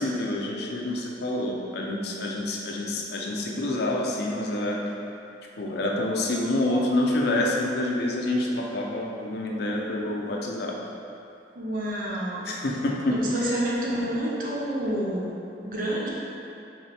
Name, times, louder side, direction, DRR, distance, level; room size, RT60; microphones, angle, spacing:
voice 1, 0.0-4.8 5.6-10.8 12.4-13.2, left 1 dB, 65° left, -1 dB, 0.5 m, -27 dB
voice 2, 11.5-12.5 13.1-16.1, right 1 dB, 55° right, -5 dB, 0.7 m, -29 dB
4.1 x 3.2 x 3.3 m, 2.7 s
head